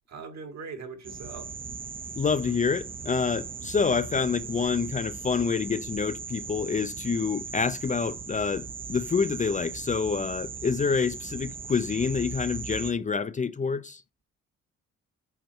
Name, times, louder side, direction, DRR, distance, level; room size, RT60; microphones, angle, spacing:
voice 1, 0.1-1.6, right 5 dB, 60° right, 2.2 m, -41 dB
sound 1, 1.0-12.9, right 5 dB, 30° right, 0.6 m, -38 dB
voice 2, 2.2-14.0, left 5 dB, 25° left, 0.5 m, -27 dB
8.0 x 4.4 x 4.5 m
cardioid pair, 90°, 30 cm